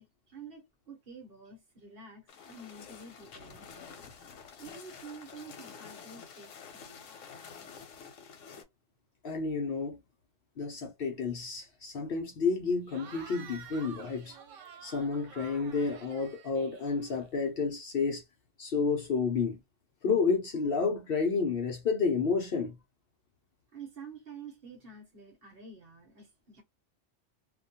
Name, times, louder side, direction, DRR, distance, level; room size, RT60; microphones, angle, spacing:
voice 1, 0.0-4.0 4.6-7.1 23.7-26.6, right 4 dB, 55° right, 1.0 m, -49 dB
sound 1, 2.3-8.6, left 6 dB, 90° left, 1.0 m, -49 dB
voice 2, 9.2-10.0 10.6-14.4 14.8-18.2 18.6-19.6 20.0-22.8, left 5 dB, 60° left, 0.7 m, -30 dB
Cheering / Crowd, 12.8-17.5, right 6 dB, 85° right, 1.0 m, -50 dB
2.4 x 2.2 x 2.6 m
omnidirectional pair, 1.3 m